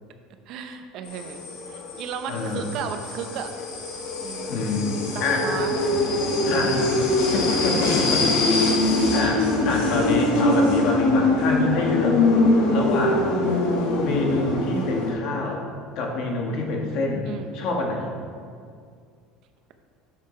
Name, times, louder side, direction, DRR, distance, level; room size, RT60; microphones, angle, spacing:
voice 1, 0.5-3.5 4.2-4.7 5.1-5.8 7.1-7.3 10.3-10.7 17.3-17.5, right 8 dB, 55° right, 6 dB, 0.7 m, -35 dB
sound 1, 1.1-15.1, left 2 dB, 85° left, 1.5 m, -23 dB
voice 2, 2.3-2.6 4.5-5.5 6.4-6.9 7.3-8.2 8.5-8.7 9.1-12.2 12.7-13.3 14.0-15.7 15.9-17.2 17.5-18.1, left 3 dB, 55° left, 0 dB, 1.5 m, -26 dB
10.0 x 6.6 x 3.3 m, 2.2 s
cardioid pair, 135°, 0 cm